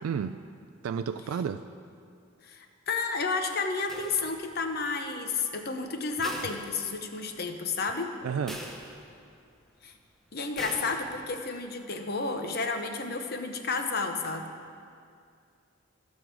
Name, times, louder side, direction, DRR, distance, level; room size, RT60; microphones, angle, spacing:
voice 1, 0.0-0.4 0.8-1.6 8.2-8.6, right 7 dB, 80° right, 10 dB, 0.3 m, -31 dB
voice 2, 2.4-8.1 9.8-9.9 10.3-14.5, left 4 dB, 45° left, 6 dB, 0.7 m, -31 dB
sound 1, 3.9-4.7 6.2-7.4 7.7-7.8 8.5-9.4 10.6-11.4, equal, ahead, 0.7 m, -42 dB
14.0 x 6.4 x 4.7 m, 2.3 s
head